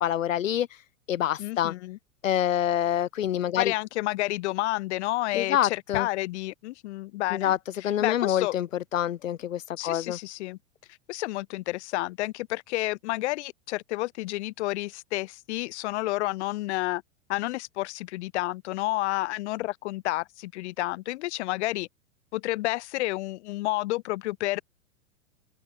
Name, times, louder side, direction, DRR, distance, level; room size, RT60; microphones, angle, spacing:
voice 1, 0.0-1.7 2.2-3.7 5.3-6.1 7.3-7.6 7.8-8.7 8.9-10.2, left 11 dB, 75° left, 1.4 m, -26 dB
voice 2, 1.4-2.0 3.6-7.5 7.8-8.5 9.8-10.6 11.1-17.0 17.3-21.9 22.3-24.6, left 18 dB, 60° left, 4.4 m, -30 dB
open air
hypercardioid pair, 105°, 39 cm